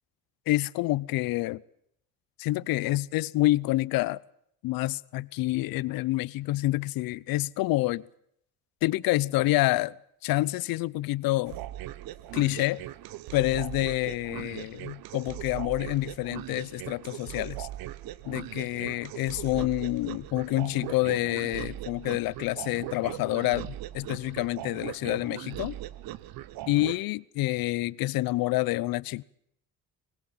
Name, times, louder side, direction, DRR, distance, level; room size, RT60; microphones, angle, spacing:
voice 1, 0.5-1.6 2.4-4.2 4.6-8.0 8.8-9.9 10.2-11.6 12.3-12.8 13.3-17.7 18.2-25.7 26.7-29.2, left 18 dB, 75° left, 0.8 m, -28 dB
sound 1, 11.4-27.0, right 14 dB, 75° right, 1.0 m, -39 dB
24.0 x 20.0 x 7.3 m
supercardioid pair, 75°, 35 cm